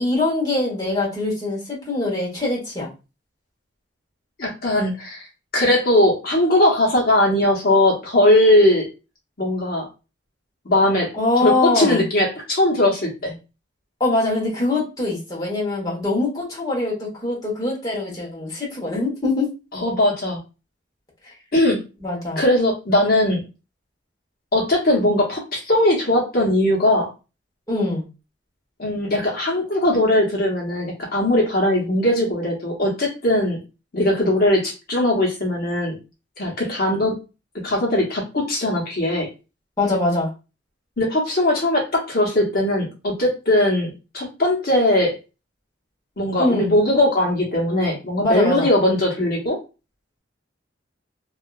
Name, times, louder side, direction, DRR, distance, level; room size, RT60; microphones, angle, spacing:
voice 1, 0.0-2.9 11.1-12.0 14.0-19.5 22.0-22.4 27.7-28.1 39.8-40.3 46.4-46.7 48.2-48.7, left 2 dB, 20° left, -5 dB, 1.1 m, -23 dB
voice 2, 4.4-5.3 5.5-8.9 9.4-9.9 10.6-11.1 11.4-13.4 19.7-20.4 21.5-21.8 22.4-23.4 24.5-27.1 28.8-33.6 33.9-36.0 36.4-37.2 37.6-39.3 41.0-45.2 46.2-49.6, left 1 dB, 55° left, -2 dB, 0.9 m, -19 dB
2.7 x 2.4 x 2.3 m, 0.30 s
head